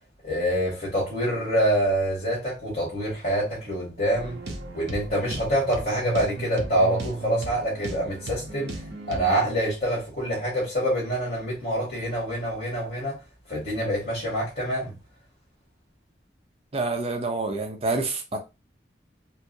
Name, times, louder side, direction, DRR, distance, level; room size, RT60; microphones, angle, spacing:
voice 1, 0.2-4.4 4.7-8.8 9.1-13.2 13.5-14.9, right 1 dB, 40° left, 1.8 m, -26 dB
sound 1, 4.1-9.3, right 2 dB, 70° right, 0.7 m, -35 dB
voice 2, 16.7-18.4, right 3 dB, 35° right, 0.6 m, -27 dB
4.4 x 2.0 x 2.7 m
head